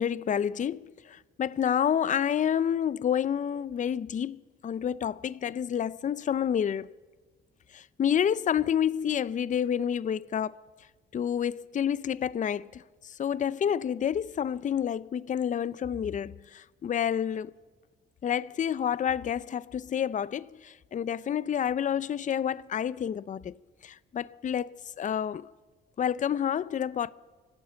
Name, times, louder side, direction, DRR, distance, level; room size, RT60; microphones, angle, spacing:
voice 1, 0.0-6.9 7.7-10.6 11.1-17.5 18.2-23.6 23.8-25.5 26.0-27.1, left 9 dB, 40° left, 0.5 m, -29 dB
25.5 x 12.5 x 8.2 m
cardioid pair, 90°, 20 cm